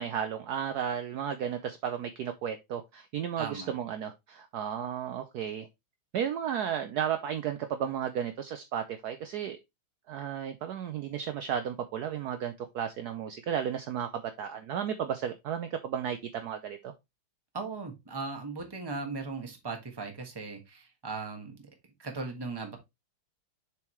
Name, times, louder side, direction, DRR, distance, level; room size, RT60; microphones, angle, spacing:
voice 1, 0.0-5.7 6.1-9.6 10.1-16.9, right 8 dB, 75° right, 0.9 m, -33 dB
voice 2, 3.4-3.8 17.5-21.6 22.0-22.8, right 4 dB, 15° right, 1.0 m, -38 dB
7.0 x 4.6 x 3.1 m
omnidirectional pair, 2.4 m